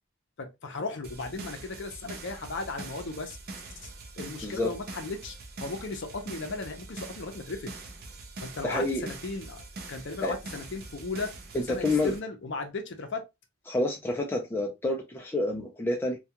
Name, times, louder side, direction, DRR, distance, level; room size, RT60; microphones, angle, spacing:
voice 1, 0.4-3.4 4.2-7.7 8.4-13.3, left 3 dB, 55° left, 0.6 m, -36 dB
sound 1, 1.0-12.2, right 3 dB, 45° right, 0.5 m, -43 dB
voice 2, 8.6-9.1 10.2-10.4 11.5-12.1 13.7-16.2, left 2 dB, 10° left, 0.4 m, -28 dB
2.3 x 2.3 x 2.8 m
head